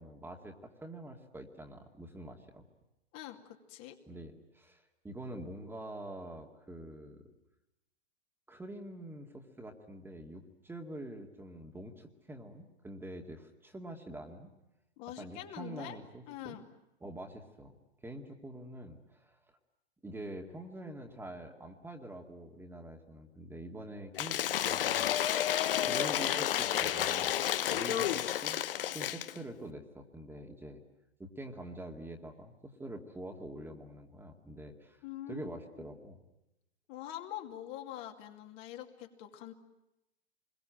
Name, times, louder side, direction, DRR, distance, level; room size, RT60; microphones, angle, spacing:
voice 1, 0.0-2.6 4.1-7.2 8.5-14.5 15.2-16.6 17.0-17.8 18.0-19.4 20.0-25.1 25.8-28.6 28.9-30.8 31.2-36.2, right 1 dB, 5° right, 3 dB, 2.3 m, -46 dB
voice 2, 3.1-4.0 15.0-16.0 16.3-16.6 27.7-28.0 35.0-35.8 36.9-39.5, left 12 dB, 35° left, 4 dB, 2.6 m, -44 dB
Cheering / Applause / Crowd, 24.1-29.4, left 11 dB, 55° left, 1.2 m, -31 dB
27.5 x 22.0 x 9.0 m, 0.90 s
figure-of-eight pair, 105°, 32 cm